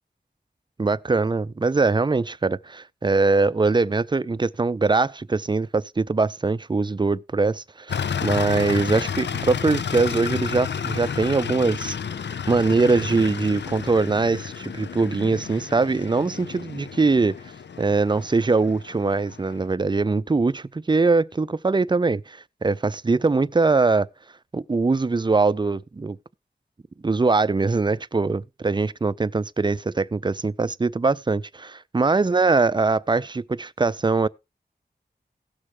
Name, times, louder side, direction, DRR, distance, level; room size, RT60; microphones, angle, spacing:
voice 1, 0.8-12.0 12.5-17.4 17.8-24.1 24.5-26.2 27.0-34.3, right 3 dB, 25° right, 0.4 m, -22 dB
sound 1, 7.9-19.6, left 7 dB, 80° left, 0.5 m, -31 dB
17.0 x 6.4 x 3.3 m
wide cardioid pair, 50°, 18 cm